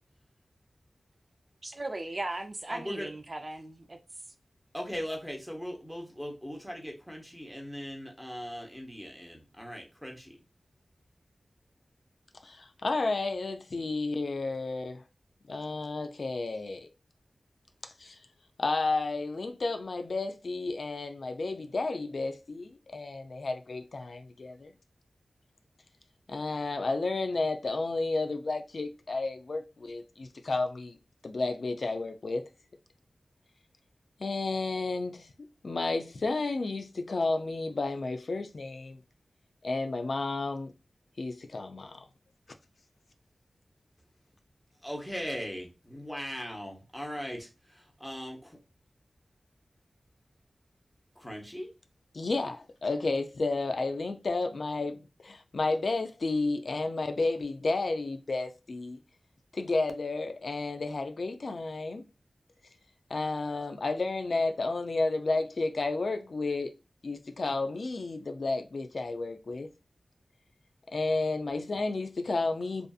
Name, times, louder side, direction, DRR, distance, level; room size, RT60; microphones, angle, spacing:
voice 1, 1.6-4.0, right 2 dB, 45° right, 0.4 m, -37 dB
voice 2, 2.7-3.1 4.7-10.4 44.8-47.4 48.0-48.4 51.2-51.7, equal, 5° left, 0.9 m, -39 dB
voice 3, 12.4-15.0 15.5-16.9 18.0-18.2 18.6-24.7 26.3-31.0 31.2-32.5 34.2-35.3 35.6-39.0 39.6-40.7 41.2-42.0 52.1-59.0 59.5-62.1 63.1-66.7 67.0-69.7 70.9-72.9, left 3 dB, 70° left, 0.3 m, -32 dB
2.5 x 2.5 x 2.3 m
cardioid pair, 55°, 0 cm